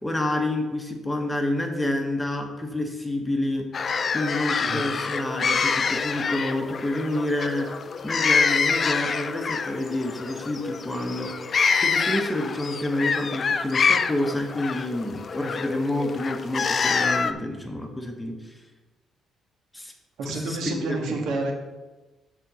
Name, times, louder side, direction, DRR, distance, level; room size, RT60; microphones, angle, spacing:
voice 1, 0.0-7.7 8.0-18.6 19.7-19.9 20.2-21.1, left 1 dB, 10° left, 3 dB, 0.9 m, -29 dB
sound 1, 3.7-17.3, left 5 dB, 30° left, 0.4 m, -26 dB
voice 2, 4.6-4.9 20.2-21.5, right 2 dB, 85° right, 2 dB, 1.6 m, -29 dB
7.4 x 5.0 x 6.9 m, 1.2 s
cardioid pair, 175°, 0 cm